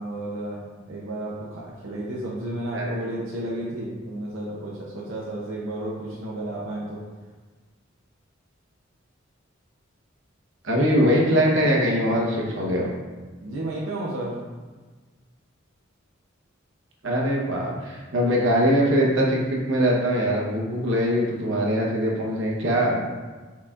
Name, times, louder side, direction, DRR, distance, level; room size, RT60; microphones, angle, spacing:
voice 1, 0.0-7.1 13.4-14.5, right 1 dB, 90° right, -5 dB, 0.6 m, -32 dB
voice 2, 10.6-12.9 17.0-23.0, equal, 70° right, -3 dB, 0.9 m, -22 dB
4.4 x 4.1 x 2.4 m, 1.3 s
head